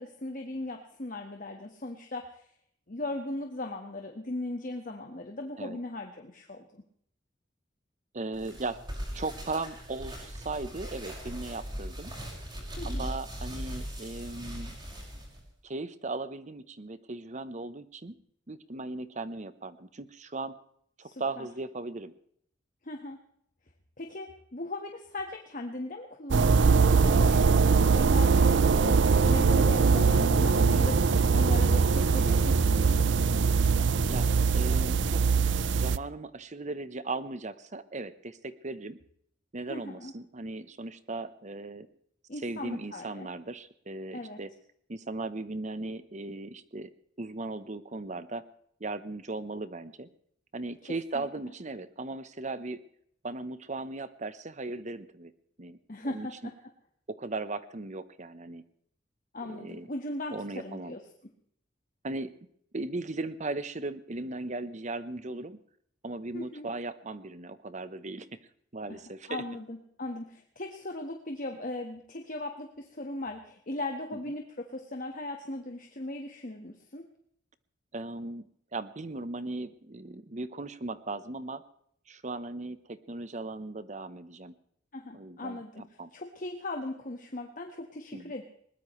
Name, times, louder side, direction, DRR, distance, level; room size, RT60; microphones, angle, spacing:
voice 1, 0.0-2.5 2.9-6.8 12.8-13.1 21.0-21.5 22.8-23.2 24.0-32.8 39.7-40.1 42.3-43.3 44.1-44.4 51.1-51.3 55.9-56.5 59.3-61.0 66.3-66.7 68.9-69.0 69.3-77.0 84.9-88.4, left 2 dB, 45° left, 3 dB, 1.5 m, -38 dB
voice 2, 8.1-8.8 9.1-12.1 12.8-14.7 15.6-18.2 18.5-20.6 21.0-22.1 34.1-34.3 34.5-35.2 35.7-39.0 39.5-41.9 42.4-44.5 44.9-46.9 47.2-48.4 48.8-50.1 50.5-52.8 53.2-55.3 55.6-55.8 56.0-56.3 57.1-58.6 59.4-59.9 60.3-60.9 62.0-62.3 62.7-65.6 66.0-68.4 68.7-69.4 77.9-78.4 78.7-81.6 82.1-84.5 85.1-85.6 86.0-86.1 88.1-88.3, right 2 dB, 40° right, 13 dB, 1.0 m, -37 dB
sound 1, 8.3-15.4, equal, 25° right, 5.8 m, -39 dB
sound 2, 26.3-36.0, right 5 dB, 70° right, 0.5 m, -22 dB
21.0 x 20.0 x 3.2 m, 0.67 s
head